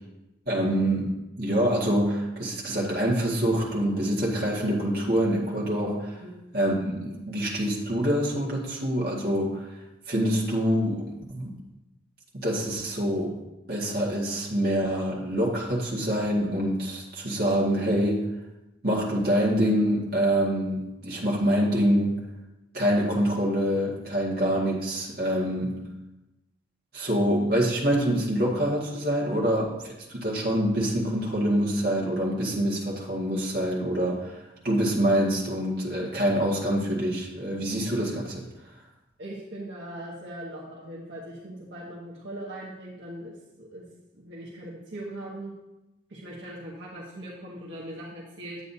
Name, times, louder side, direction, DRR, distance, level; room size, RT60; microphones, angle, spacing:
voice 1, 0.5-6.2 6.5-9.7 10.1-11.5 12.3-13.4 13.7-18.3 18.8-22.2 22.7-25.8 26.9-34.4 34.6-38.4, equal, 50° right, -4 dB, 2.0 m, -25 dB
voice 2, 39.2-43.8 44.1-45.5 46.1-48.6, right 1 dB, 75° right, -5 dB, 1.3 m, -40 dB
9.9 x 8.1 x 2.8 m, 0.98 s
head